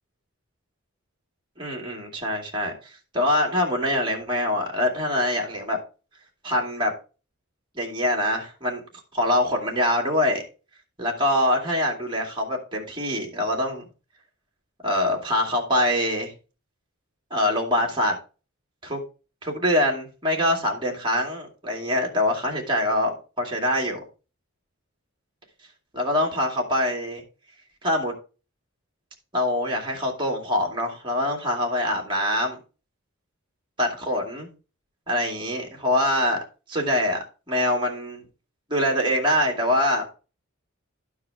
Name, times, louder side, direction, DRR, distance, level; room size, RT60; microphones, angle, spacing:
voice 1, 1.6-5.8 6.4-6.9 7.7-8.8 9.1-10.4 11.0-13.9 14.8-16.3 17.3-18.2 18.8-19.0 19.4-24.0 25.9-27.2 27.8-28.1 29.3-32.6 33.8-34.5 35.1-36.4 36.7-38.2 38.7-40.1, left 1 dB, 25° right, -1 dB, 2.4 m, -24 dB
12.0 x 4.7 x 3.6 m, 0.33 s
head